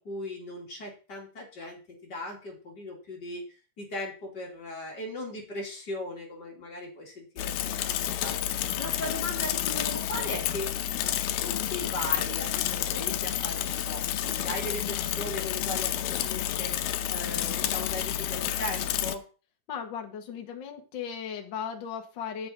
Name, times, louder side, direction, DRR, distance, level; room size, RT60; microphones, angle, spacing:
voice 1, 0.0-3.4 3.8-7.5 7.8-10.7 11.4-19.2, left 1 dB, 30° left, -2 dB, 3.1 m, -38 dB
Bicycle / Mechanisms, 7.4-19.2, left 12 dB, 90° left, 2.6 m, -30 dB
voice 2, 19.7-22.5, left 7 dB, 50° left, 3 dB, 1.4 m, -36 dB
7.8 x 7.6 x 5.2 m, 0.35 s
omnidirectional pair, 4.3 m